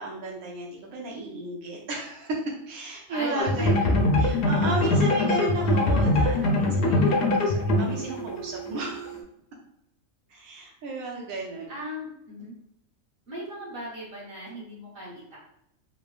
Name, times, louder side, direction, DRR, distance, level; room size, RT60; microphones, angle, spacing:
voice 1, 0.0-9.2 10.3-11.7, right 2 dB, 85° right, -2 dB, 1.0 m, -34 dB
voice 2, 3.1-3.5 5.3-5.7 6.8-7.2 11.7-12.5 13.3-15.4, equal, 45° right, -6 dB, 1.3 m, -38 dB
sound 1, 3.4-9.2, left 1 dB, 65° left, 0.6 m, -23 dB
3.2 x 2.1 x 2.4 m, 0.79 s
omnidirectional pair, 1.4 m